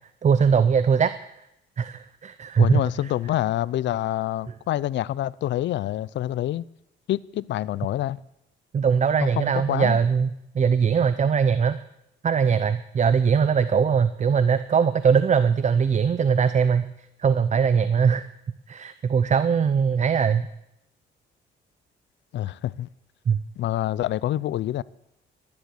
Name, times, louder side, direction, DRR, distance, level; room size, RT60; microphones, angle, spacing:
voice 1, 0.2-1.1 1.8-2.8 8.7-11.8 12.2-16.9 17.2-18.3 18.7-20.5 23.3-23.4, right 6 dB, 35° right, 0.6 m, -21 dB
voice 2, 2.6-6.6 7.1-8.2 9.4-10.0 22.3-22.9 23.6-24.8, left 13 dB, 65° left, 0.5 m, -26 dB
12.5 x 11.0 x 6.4 m
cardioid pair, 90°, 20 cm